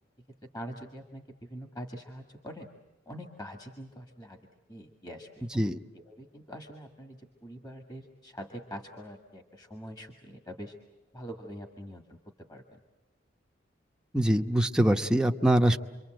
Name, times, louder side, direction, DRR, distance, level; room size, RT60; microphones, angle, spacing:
voice 1, 0.5-2.7 3.1-4.4 4.7-5.6 5.9-10.8 11.1-12.2 12.5-12.8, equal, 20° left, 4 dB, 1.8 m, -44 dB
voice 2, 14.1-15.8, right 1 dB, 5° right, 4 dB, 0.9 m, -23 dB
28.0 x 23.5 x 7.8 m, 1.2 s
head